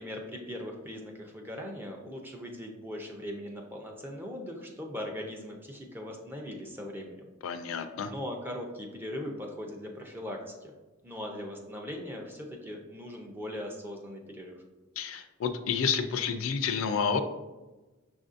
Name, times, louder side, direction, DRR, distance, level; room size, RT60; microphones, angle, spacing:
voice 1, 0.0-7.3 8.1-10.7 11.0-14.6, left 1 dB, 10° right, 1 dB, 0.5 m, -40 dB
voice 2, 7.4-8.1 15.0-17.2, left 6 dB, 85° left, 9 dB, 0.4 m, -30 dB
6.1 x 2.6 x 2.5 m, 1.2 s
head